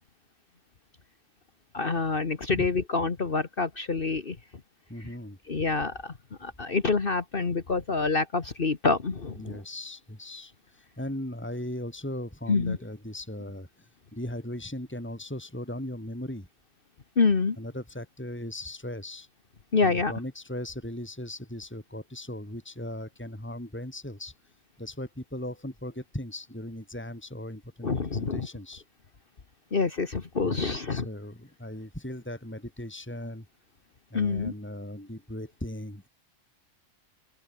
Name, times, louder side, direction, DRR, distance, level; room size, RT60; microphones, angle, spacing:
voice 1, 1.7-4.4 5.5-6.1 6.4-9.6 12.5-12.8 17.2-17.6 19.7-20.1 27.8-28.5 29.7-31.1 34.1-34.5, left 4 dB, 45° left, 1.6 m, -26 dB
voice 2, 4.9-5.4 9.4-16.5 17.6-19.3 19.8-24.3 24.8-28.8 30.4-33.5 34.1-36.1, left 1 dB, 10° left, 3.6 m, -38 dB
open air
omnidirectional pair, 1.3 m